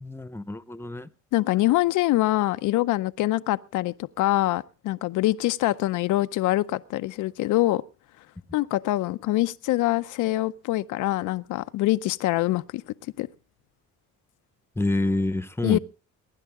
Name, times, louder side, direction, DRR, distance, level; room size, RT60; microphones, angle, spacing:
voice 1, 0.0-1.1 14.8-15.8, left 2 dB, 10° left, 0.9 m, -27 dB
voice 2, 1.3-7.8 8.5-12.8 13.2-13.3 15.6-15.8, left 16 dB, 90° left, 0.6 m, -24 dB
22.5 x 11.0 x 3.6 m
cardioid pair, 90°, 30 cm